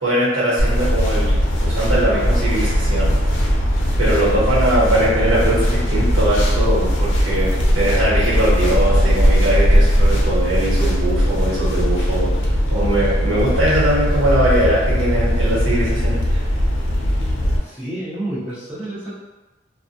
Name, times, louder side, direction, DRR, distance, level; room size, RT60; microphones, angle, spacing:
voice 1, 0.0-3.1 4.0-12.3 12.7-16.4, right 1 dB, 90° right, -8 dB, 1.1 m, -21 dB
sound 1, 0.6-17.6, equal, 85° left, 0.5 m, -18 dB
voice 2, 17.6-19.1, right 1 dB, 5° right, -10 dB, 0.7 m, -29 dB
2.2 x 2.1 x 2.6 m, 1.1 s
head